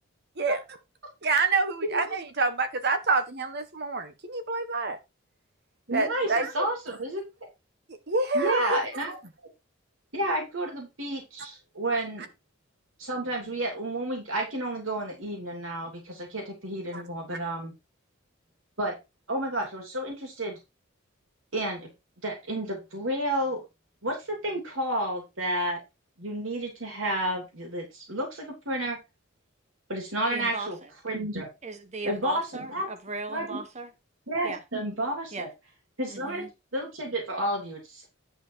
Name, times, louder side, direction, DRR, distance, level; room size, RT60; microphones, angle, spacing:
voice 1, 1.2-5.0 5.9-6.6 7.9-8.8 16.9-17.0, right 3 dB, 55° right, 1.4 m, -27 dB
voice 2, 5.9-7.2 8.3-9.1 10.1-12.3 13.0-17.7 18.8-18.9 19.3-20.6 21.5-21.9 22.2-23.6 24.0-25.8 26.2-29.0 29.9-30.8 31.0-31.5 32.0-32.4 32.7-32.9 33.3-33.6 34.3-35.5 36.0-36.4 36.7-38.1, right 1 dB, 80° right, 3.1 m, -31 dB
voice 3, 30.3-30.7 31.6-33.9 34.4-34.6 35.3-35.5 36.1-36.5, right 3 dB, 35° right, 1.2 m, -37 dB
10.5 x 4.6 x 4.6 m
head